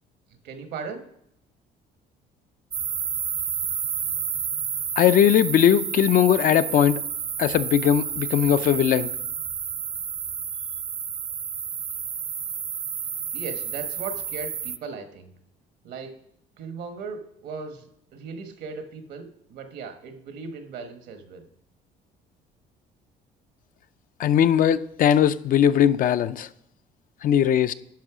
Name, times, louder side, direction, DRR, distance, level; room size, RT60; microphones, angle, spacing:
voice 1, 0.4-1.0 13.3-15.3 15.8-16.2 16.6-21.4, right 5 dB, 75° right, 1.3 m, -37 dB
sound 1, 2.7-14.8, right 7 dB, 35° right, 0.4 m, -30 dB
voice 2, 5.0-7.0 7.4-9.1 24.2-26.5 27.2-27.7, left 9 dB, 55° left, 0.4 m, -19 dB
10.5 x 5.5 x 4.9 m
cardioid pair, 110°, 17 cm